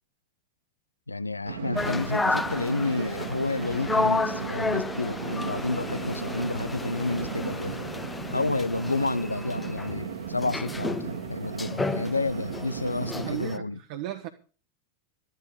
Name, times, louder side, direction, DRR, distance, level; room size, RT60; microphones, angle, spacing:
voice 1, 1.1-7.8 8.3-13.8, left 3 dB, 80° left, 0.6 m, -30 dB
sound 1, 1.4-13.4, right 6 dB, 65° right, 1.8 m, -36 dB
sound 2, 1.8-13.6, left 3 dB, 10° left, 0.6 m, -32 dB
voice 2, 13.3-14.3, right 13 dB, 50° right, 1.2 m, -35 dB
13.5 x 12.0 x 5.2 m
figure-of-eight pair, 90°, 0 cm